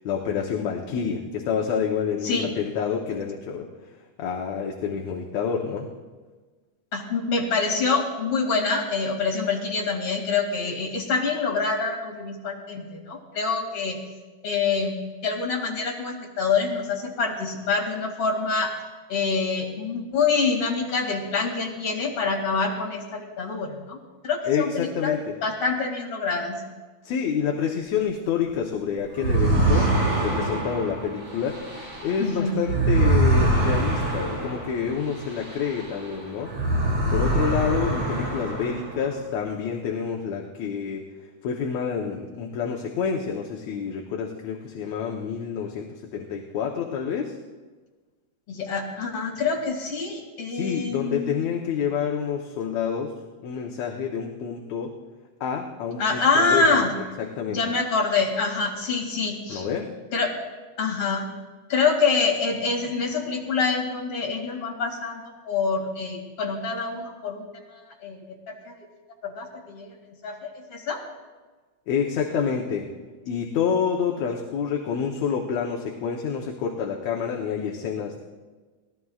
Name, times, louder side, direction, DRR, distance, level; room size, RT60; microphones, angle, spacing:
voice 1, 0.0-3.7 4.2-5.9 24.5-25.3 27.0-29.9 30.2-31.6 32.0-36.5 37.1-41.0 41.4-47.4 50.5-53.1 53.4-54.9 55.4-56.7 57.2-57.6 59.5-59.9 71.9-72.9 73.3-78.2, left 7 dB, 65° left, 0 dB, 2.1 m, -28 dB
voice 2, 2.2-2.5 6.9-14.0 14.4-18.7 19.1-24.0 24.2-26.6 29.7-29.9 32.2-32.6 48.5-51.4 56.0-56.9 57.5-59.7 60.1-60.3 60.8-61.3 61.7-68.7 69.2-71.0, left 4 dB, 50° left, -1 dB, 3.3 m, -26 dB
sound 1, 29.2-36.1 36.4-39.1, right 2 dB, 50° right, 5.5 m, -24 dB
26.0 x 18.5 x 2.4 m, 1.3 s
omnidirectional pair, 3.7 m